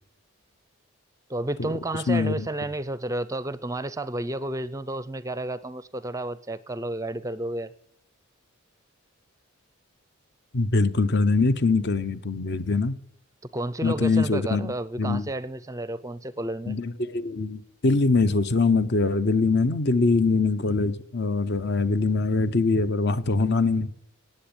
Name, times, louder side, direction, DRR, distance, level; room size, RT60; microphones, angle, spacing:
voice 1, 1.3-7.7 13.5-16.8, right 1 dB, 15° right, 0.5 m, -31 dB
voice 2, 2.1-2.5 10.5-12.9 13.8-15.3 16.7-23.9, left 3 dB, 50° left, 0.8 m, -23 dB
18.5 x 8.0 x 8.7 m
head